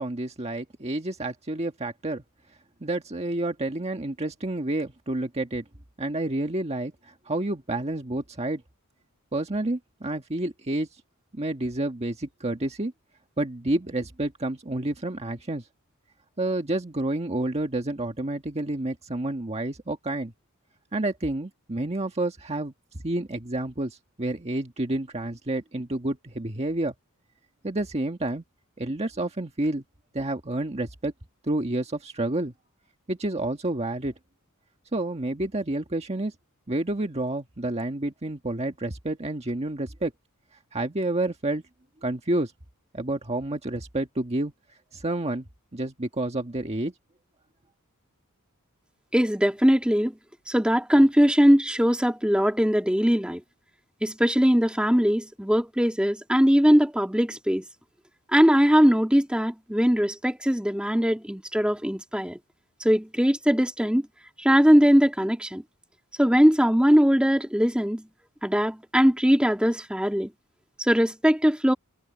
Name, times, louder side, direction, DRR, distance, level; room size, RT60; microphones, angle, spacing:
voice 1, 0.0-2.2 2.8-5.6 6.0-8.6 9.3-10.9 11.3-12.9 13.4-15.6 16.4-20.3 20.9-22.7 23.0-26.9 27.6-28.4 28.8-29.8 30.1-31.1 31.5-32.5 33.1-34.1 34.9-36.3 36.7-40.1 40.7-41.6 42.0-42.5 42.9-44.5 44.9-45.4 45.7-46.9, right 2 dB, 30° right, 1.5 m, -29 dB
voice 2, 49.1-50.1 50.5-53.4 54.0-57.6 58.3-62.4 62.8-64.0 64.4-65.6 66.2-68.0 68.4-70.3 70.8-71.7, equal, 5° right, 2.2 m, -21 dB
head